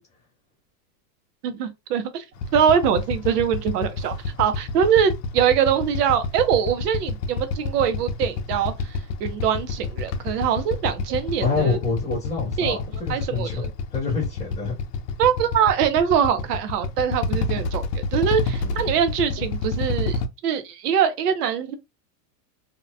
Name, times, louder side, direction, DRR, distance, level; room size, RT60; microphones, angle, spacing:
voice 1, 1.4-2.2 2.5-11.8 12.6-13.7 15.2-21.7, right 8 dB, 70° right, 0.7 m, -23 dB
Motorcycle / Idling, 2.4-20.3, left 3 dB, 75° left, 0.6 m, -29 dB
voice 2, 11.4-13.6 13.9-14.8 18.6-18.9, left 4 dB, 5° left, 0.3 m, -27 dB
2.8 x 2.1 x 2.6 m
supercardioid pair, 165°, 49 cm